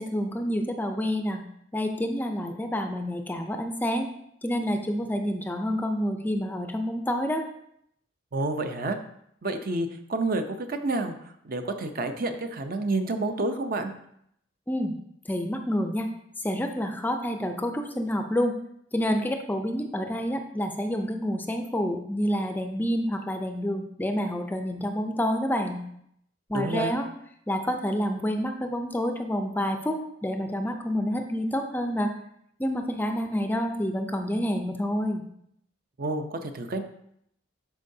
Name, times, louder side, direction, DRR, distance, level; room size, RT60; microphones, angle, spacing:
voice 1, 0.0-1.4 1.7-4.1 4.4-7.4 14.7-14.9 15.3-16.1 16.4-18.6 18.9-25.9 26.5-27.1 27.5-32.1 32.6-35.2, equal, 10° left, 5 dB, 0.4 m, -28 dB
voice 2, 8.3-9.0 9.4-11.2 11.4-13.9 26.5-26.9 36.0-36.8, right 2 dB, 50° right, 7 dB, 0.6 m, -29 dB
11.5 x 4.6 x 2.7 m, 0.73 s
head